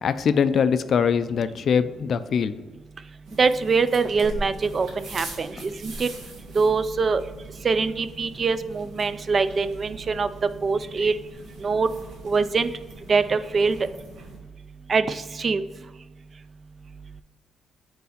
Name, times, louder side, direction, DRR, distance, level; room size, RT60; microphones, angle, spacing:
voice 1, 0.0-2.6, left 7 dB, 55° left, 13 dB, 0.3 m, -22 dB
sound 1, 3.2-14.4, right 2 dB, 85° right, 1.3 m, -42 dB
voice 2, 3.4-4.9 5.1-6.1 6.6-7.2 7.6-10.3 10.6-11.1 11.6-11.9 12.2-12.7 13.1-13.8 14.9-15.6, right 4 dB, 40° right, 12 dB, 0.3 m, -23 dB
4.6 x 4.1 x 5.1 m, 1.3 s
cardioid pair, 90°, 0 cm